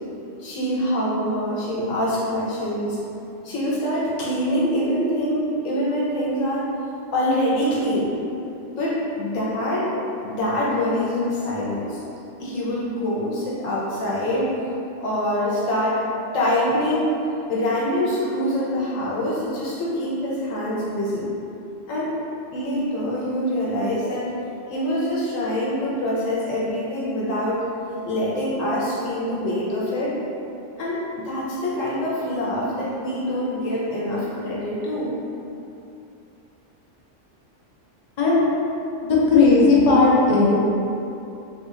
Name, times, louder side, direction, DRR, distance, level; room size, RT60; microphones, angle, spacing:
voice 1, 0.4-3.0 3.4-6.7 7.1-8.1 8.8-9.9 10.2-12.0 12.4-14.6 15.0-16.0 16.3-17.2 17.5-21.3 21.9-22.1 22.5-24.3 24.7-27.6 28.1-30.2 30.8-35.1, equal, 90° left, -6 dB, 1.1 m, -25 dB
voice 2, 39.0-40.5, left 3 dB, 50° left, -5 dB, 0.5 m, -16 dB
3.4 x 2.8 x 2.4 m, 2.8 s
omnidirectional pair, 1.3 m